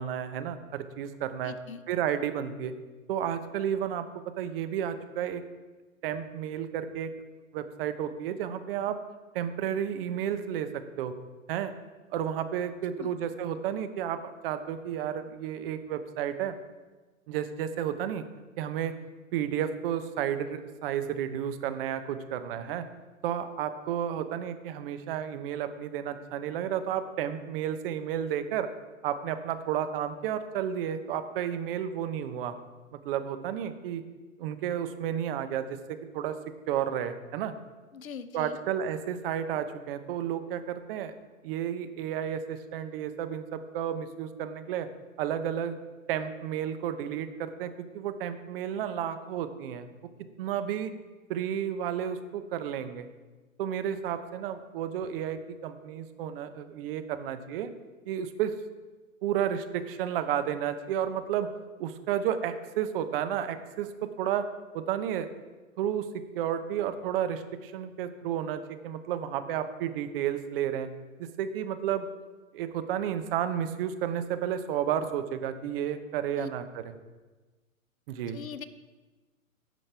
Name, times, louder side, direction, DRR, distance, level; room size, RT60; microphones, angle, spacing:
voice 1, 0.0-1.5 1.9-2.7 3.1-4.1 4.4-5.4 6.0-7.1 7.5-9.0 9.3-11.1 11.5-11.7 12.1-16.5 17.3-18.2 18.6-18.9 19.3-22.8 23.2-28.7 29.0-32.5 32.9-34.0 34.4-36.3 36.7-37.5 38.3-41.1 41.4-44.9 45.2-45.7 46.1-49.9 50.4-50.9 51.3-53.1 53.6-57.7 58.1-58.5 59.2-61.5 61.8-64.5 64.7-65.3 65.8-66.1 66.3-70.9 71.2-72.0 72.5-76.9 78.1-78.4, right 9 dB, 45° right, 10 dB, 0.9 m, -32 dB
voice 2, 1.4-1.8 13.0-13.1 37.9-38.6 76.3-76.5 78.3-78.7, left 7 dB, 80° left, 11 dB, 0.9 m, -41 dB
16.5 x 6.2 x 3.4 m, 1.3 s
hypercardioid pair, 125°, 41 cm